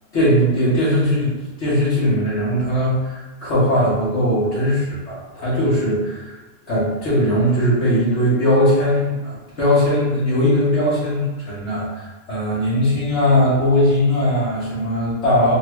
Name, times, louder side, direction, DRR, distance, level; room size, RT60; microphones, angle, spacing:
voice 1, 0.1-1.3 1.6-6.4 6.7-15.6, equal, 85° left, -8 dB, 1.4 m, -19 dB
3.7 x 2.2 x 3.0 m, 1.2 s
omnidirectional pair, 1.1 m